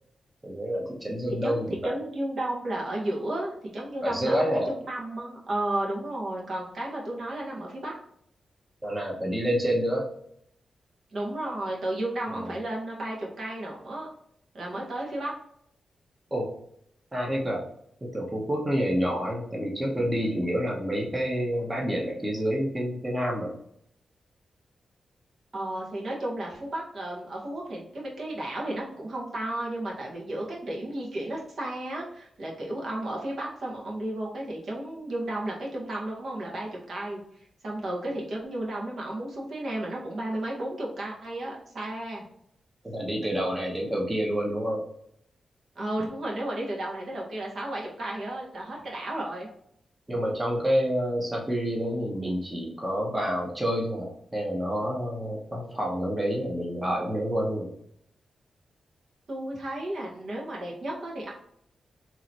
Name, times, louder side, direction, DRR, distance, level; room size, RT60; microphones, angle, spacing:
voice 1, 0.4-2.0 4.0-4.7 8.8-10.1 12.3-12.6 16.3-16.5 17.1-17.7 18.1-23.5 42.8-44.9 50.1-57.7, equal, 20° right, -2 dB, 1.0 m, -28 dB
voice 2, 1.4-8.0 11.1-14.1 14.5-15.3 25.5-37.2 37.6-42.2 45.7-49.5 59.3-61.3, right 1 dB, 65° right, -3 dB, 1.4 m, -33 dB
3.7 x 3.0 x 2.9 m, 0.70 s
cardioid pair, 80°, 0 cm